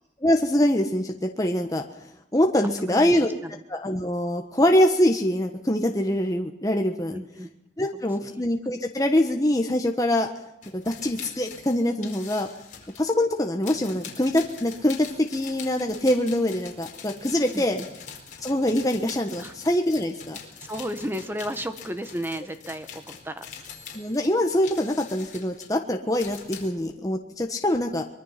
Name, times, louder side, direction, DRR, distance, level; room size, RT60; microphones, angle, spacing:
voice 1, 0.2-1.8 2.3-3.3 3.7-7.2 7.8-10.3 10.7-12.5 13.0-17.8 18.4-20.4 23.9-28.0, left 1 dB, 20° left, 3 dB, 1.3 m, -24 dB
voice 2, 2.9-3.5 7.1-7.5 17.5-17.9 19.4-19.5 20.7-23.4, equal, 10° right, 9 dB, 1.4 m, -33 dB
sound 1, 10.6-13.0 13.6-26.7, left 7 dB, 45° left, 4.7 m, -43 dB
24.0 x 22.5 x 5.9 m, 0.83 s
head